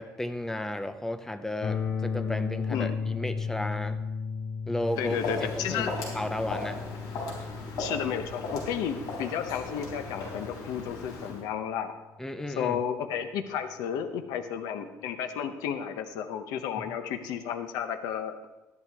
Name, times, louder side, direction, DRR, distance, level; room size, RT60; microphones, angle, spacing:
voice 1, 0.0-4.0 4.7-6.8 12.2-12.8 16.8-16.9, left 1 dB, 5° left, 10 dB, 0.5 m, -34 dB
sound 1, 1.6-11.5, left 5 dB, 35° left, 0.8 m, -36 dB
Walk footsteps, 4.8-11.4, left 2 dB, 70° left, 3.8 m, -37 dB
voice 2, 5.0-5.9 7.8-11.9 12.6-18.4, left 8 dB, 90° left, 8 dB, 0.9 m, -32 dB
12.5 x 11.0 x 3.6 m, 1.1 s
cardioid pair, 155°, 6 cm